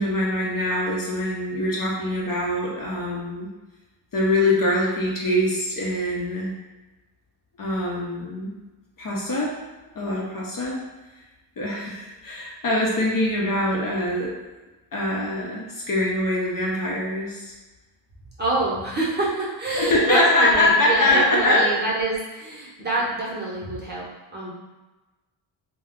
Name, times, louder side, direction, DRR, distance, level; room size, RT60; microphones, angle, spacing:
voice 1, 0.0-3.5 4.1-6.5 7.6-8.5 9.0-9.6 10.0-10.8 11.6-14.3 14.9-17.5 19.8-21.7, left 1 dB, 45° left, -4 dB, 0.7 m, -23 dB
voice 2, 18.4-24.5, right 2 dB, 20° right, -7 dB, 0.8 m, -26 dB
2.3 x 2.2 x 3.5 m, 1.1 s
cardioid pair, 100°, 47 cm